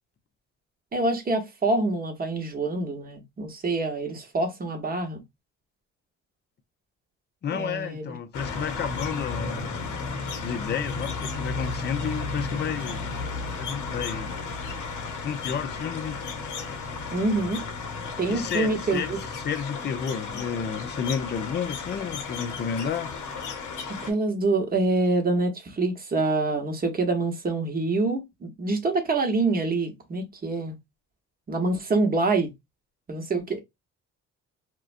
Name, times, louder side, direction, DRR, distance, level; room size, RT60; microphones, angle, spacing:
voice 1, 0.9-5.2 7.5-8.2 17.1-17.6 18.2-19.2 23.9-30.8 31.5-32.5 33.1-33.6, right 3 dB, 30° right, 0.9 m, -26 dB
voice 2, 7.4-10.0 10.4-13.3 13.6-14.3 15.2-16.2 18.3-23.1, left 7 dB, 35° left, 0.4 m, -31 dB
sound 1, 8.3-24.1, left 4 dB, 80° left, 0.7 m, -34 dB
2.4 x 2.2 x 2.4 m
cardioid pair, 90°, 30 cm